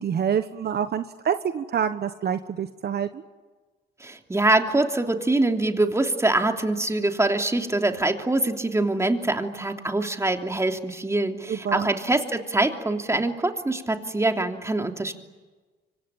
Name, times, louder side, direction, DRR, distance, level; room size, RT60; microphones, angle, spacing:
voice 1, 0.0-3.2 11.5-11.9, right 8 dB, 55° right, 10 dB, 1.3 m, -27 dB
voice 2, 4.0-15.2, right 2 dB, 15° right, 4 dB, 3.0 m, -24 dB
25.5 x 25.0 x 8.9 m, 1.3 s
cardioid pair, 90°, 20 cm